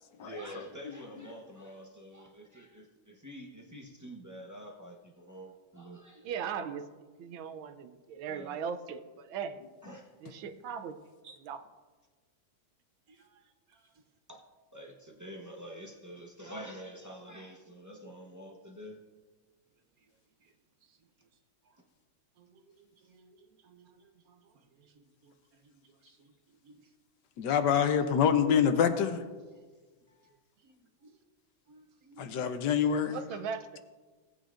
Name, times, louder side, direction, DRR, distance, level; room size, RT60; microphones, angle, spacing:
voice 1, 0.2-6.3 8.3-8.6 9.8-10.1 14.3-14.4 14.7-19.0 30.1-30.3 33.3-33.4, equal, 25° right, -1 dB, 0.4 m, -47 dB
voice 2, 0.8-1.2 27.4-29.2 32.2-33.2, left 7 dB, 65° left, 8 dB, 1.2 m, -26 dB
voice 3, 6.2-6.8 7.2-9.6 10.2-10.9 11.4-11.6 33.1-33.8, right 7 dB, 80° right, 9 dB, 1.5 m, -38 dB
voice 4, 13.1-13.4 13.7-13.8 20.4-20.5 21.7-21.8 22.4-25.3 25.6-26.3 26.6-26.9 30.6-31.1 31.7-32.4, right 3 dB, 60° right, 6 dB, 1.0 m, -60 dB
17.5 x 9.0 x 2.5 m, 1.4 s
omnidirectional pair, 2.2 m